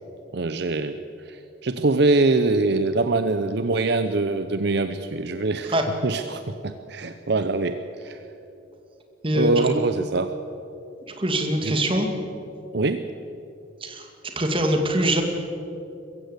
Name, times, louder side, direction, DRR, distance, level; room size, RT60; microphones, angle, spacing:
voice 1, 0.3-1.0 1.2-8.2 9.3-10.3 11.6-11.7 12.7-13.1, right 3 dB, 60° right, 9 dB, 0.7 m, -24 dB
voice 2, 9.2-9.7 11.2-12.1 13.8-15.2, right 1 dB, 30° right, 4 dB, 2.2 m, -23 dB
22.5 x 15.0 x 8.2 m, 2.8 s
head